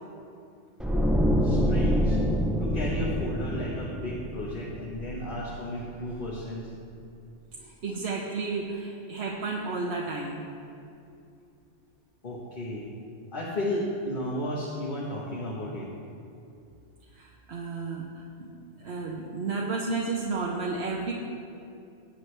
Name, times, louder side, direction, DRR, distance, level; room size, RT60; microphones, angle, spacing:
sound 1, 0.8-5.9 6.2-6.4, equal, ahead, 0.5 m, -27 dB
voice 1, 1.4-2.2 2.6-6.7 7.6-7.7 12.2-12.9 13.3-15.9, left 1 dB, 50° left, -5 dB, 1.5 m, -33 dB
voice 2, 7.8-10.4 17.2-18.5 18.8-21.1, right 3 dB, 70° right, -2 dB, 1.2 m, -32 dB
18.0 x 7.9 x 3.3 m, 2.6 s
omnidirectional pair, 1.1 m